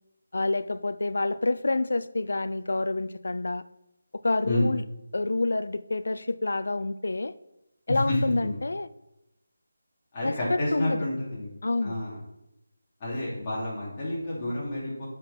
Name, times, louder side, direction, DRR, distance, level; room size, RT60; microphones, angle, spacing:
voice 1, 0.3-3.6 4.1-4.8 5.1-7.3 7.9-8.9 10.2-10.4 10.7-11.0 11.6-12.0, left 2 dB, 70° left, 14 dB, 0.4 m, -28 dB
voice 2, 7.9-8.5 10.1-11.5 11.8-12.2 13.0-15.1, left 1 dB, 20° left, -8 dB, 2.9 m, -29 dB
7.4 x 6.2 x 4.3 m, 0.87 s
figure-of-eight pair, 170°, 0 cm